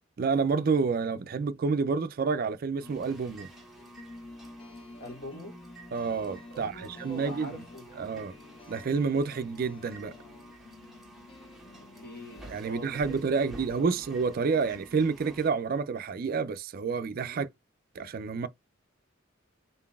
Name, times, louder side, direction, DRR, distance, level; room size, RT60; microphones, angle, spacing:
voice 1, 0.2-3.5 5.9-7.6 8.0-8.4 8.7-10.2 12.5-17.5 17.9-18.5, right 5 dB, 50° right, 0.4 m, -29 dB
sound 1, 2.8-15.5, right 1 dB, ahead, 1.0 m, -50 dB
sound 2, 3.8-12.6, left 2 dB, 30° left, 0.5 m, -50 dB
voice 2, 5.0-5.6 6.5-8.0 12.0-13.9 17.2-17.4, equal, 55° left, 2.0 m, -44 dB
3.9 x 3.9 x 2.3 m
head